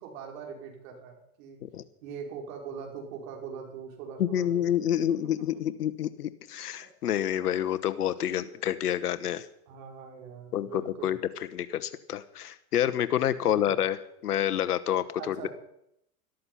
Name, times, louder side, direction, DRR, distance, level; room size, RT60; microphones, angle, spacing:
voice 1, 0.0-1.6 2.0-4.7 4.9-5.0 6.8-6.9 9.7-11.2 13.4-13.8 15.2-15.5, right 6 dB, 60° right, 1 dB, 5.7 m, -42 dB
voice 2, 4.2-9.5 10.5-11.2 11.5-15.5, left 10 dB, 85° left, 13 dB, 1.2 m, -28 dB
13.5 x 13.0 x 5.7 m, 0.77 s
hypercardioid pair, 115°, 45 cm